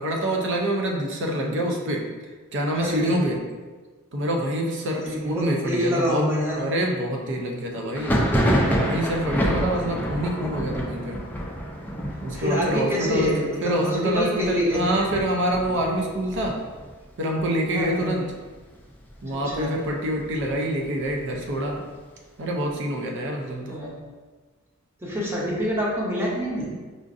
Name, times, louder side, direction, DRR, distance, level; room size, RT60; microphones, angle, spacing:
voice 1, 0.0-2.0 2.5-3.4 4.1-8.2 8.8-11.2 12.2-16.6 17.2-18.3 19.2-21.8 22.4-23.8, right 1 dB, 60° right, 0 dB, 0.6 m, -26 dB
voice 2, 2.7-3.2 5.0-6.6 12.3-15.1 17.7-18.1 19.3-19.7 23.7-23.9 25.0-26.6, equal, 10° right, -5 dB, 0.7 m, -26 dB
Thunder, 7.9-17.4 17.7-18.4 18.6-19.6 20.0-21.7, equal, 10° left, 0.4 m, -28 dB
5.0 x 2.5 x 2.6 m, 1.4 s
head